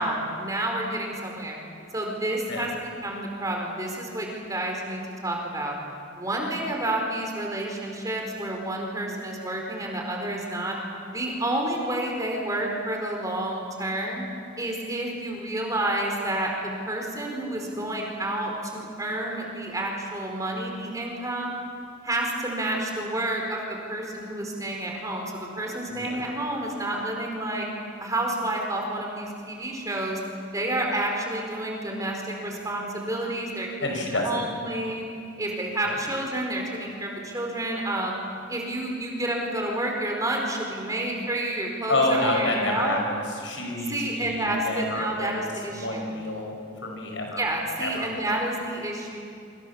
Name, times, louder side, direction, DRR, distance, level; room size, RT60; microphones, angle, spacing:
voice 1, 0.0-1.6 1.9-5.8 6.2-10.8 11.1-14.2 14.6-21.5 22.0-27.6 28.0-30.2 30.5-35.1 35.4-38.1 38.5-43.0 43.9-46.2 47.4-49.2, right 1 dB, 15° right, 0 dB, 4.6 m, -29 dB
voice 2, 33.8-34.4 35.8-36.0 41.9-45.3 45.7-46.6 46.8-47.4 47.8-48.1, left 1 dB, 70° left, 1 dB, 5.7 m, -28 dB
27.5 x 25.5 x 7.2 m, 2.5 s
head